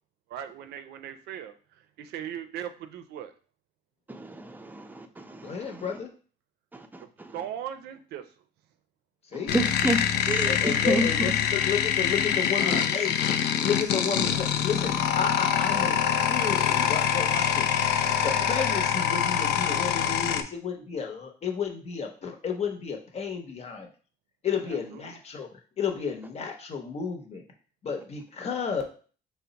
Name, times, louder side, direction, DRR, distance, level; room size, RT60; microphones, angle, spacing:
voice 1, 0.3-1.5 2.0-3.3 7.3-8.3 12.6-12.9 24.7-25.1, right 9 dB, 75° right, 9 dB, 0.5 m, -38 dB
voice 2, 4.1-5.8 6.7-7.4 9.3-11.3, right 1 dB, 10° right, 6 dB, 0.5 m, -30 dB
voice 3, 5.4-6.1 9.3-9.5 10.5-17.7 18.2-23.9 24.4-25.5 25.8-27.4 27.8-28.8, left 6 dB, 40° left, 3 dB, 0.9 m, -32 dB
sound 1, 9.5-20.4, left 9 dB, 75° left, 0.4 m, -25 dB
4.4 x 2.1 x 3.9 m, 0.39 s
cardioid pair, 110°, 17 cm